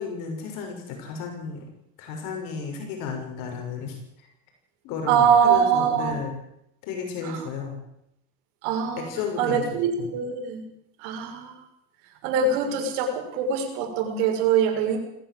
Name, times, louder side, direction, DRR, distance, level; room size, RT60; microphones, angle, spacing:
voice 1, 0.0-1.7 2.0-4.3 4.8-6.3 6.8-7.8 9.0-9.6 10.0-10.1, left 5 dB, 65° left, 3 dB, 6.5 m, -33 dB
voice 2, 5.1-6.1 7.2-7.5 8.6-9.1 9.4-10.6 11.0-11.6 12.2-15.0, right 6 dB, 75° right, 4 dB, 6.3 m, -23 dB
21.0 x 16.0 x 7.9 m, 0.78 s
cardioid pair, 135°, 34 cm